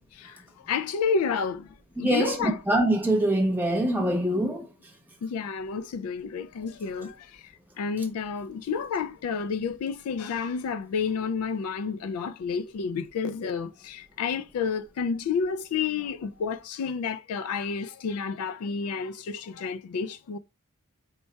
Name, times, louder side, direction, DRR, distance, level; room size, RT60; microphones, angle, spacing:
voice 1, 0.7-1.7 2.0-2.6 5.2-7.1 7.8-20.4, left 5 dB, 80° left, 0.3 m, -30 dB
voice 2, 2.0-4.6, right 1 dB, 10° right, 0.8 m, -24 dB
4.4 x 2.2 x 4.0 m
head